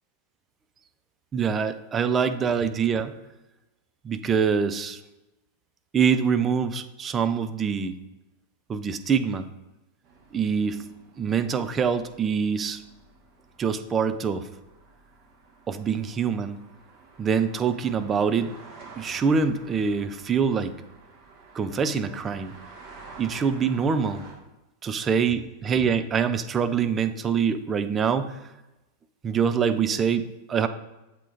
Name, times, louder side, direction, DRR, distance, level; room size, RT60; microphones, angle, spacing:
voice 1, 1.3-3.1 4.0-5.0 5.9-8.0 8.7-9.5 10.3-10.8 11.2-12.8 13.6-14.4 15.7-16.6 17.2-18.6 19.0-20.7 21.5-22.5 23.2-24.2 24.8-28.4 29.2-30.7, right 6 dB, 25° right, 10 dB, 0.4 m, -25 dB
sound 1, 10.0-24.3, right 3 dB, 45° right, 1.4 m, -50 dB
7.4 x 3.6 x 4.1 m, 0.99 s
figure-of-eight pair, 90°, 0 cm